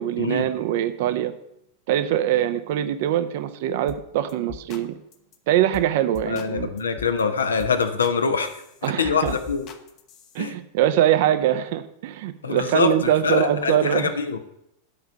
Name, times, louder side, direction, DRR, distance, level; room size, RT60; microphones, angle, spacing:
voice 1, 0.0-1.3 1.9-5.0 5.5-6.7 8.8-9.4 10.3-14.1, right 11 dB, 50° right, 11 dB, 0.7 m, -23 dB
sound 1, 3.9-4.0 4.3-4.8 5.1-5.4 5.7-5.9 6.1-7.2 7.6-8.2 8.4-10.5, left 9 dB, 35° left, 1.0 m, -41 dB
voice 2, 6.3-9.7 10.4-10.5 12.4-14.4, left 5 dB, 70° left, 8 dB, 1.0 m, -24 dB
8.7 x 5.7 x 7.7 m, 0.80 s
figure-of-eight pair, 90°, 0 cm